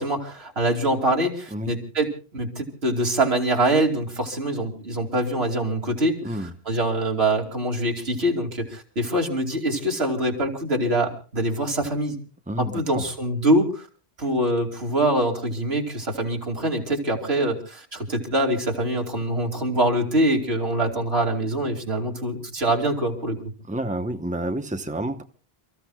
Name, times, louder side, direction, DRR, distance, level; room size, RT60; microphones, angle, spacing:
voice 1, 0.0-12.2 12.6-13.9 14.2-23.4, right 1 dB, 85° right, 2 dB, 3.0 m, -24 dB
voice 2, 6.2-6.5 12.5-13.1 23.7-25.2, right 1 dB, 10° right, 6 dB, 1.0 m, -29 dB
29.5 x 14.5 x 2.4 m, 0.38 s
omnidirectional pair, 1.0 m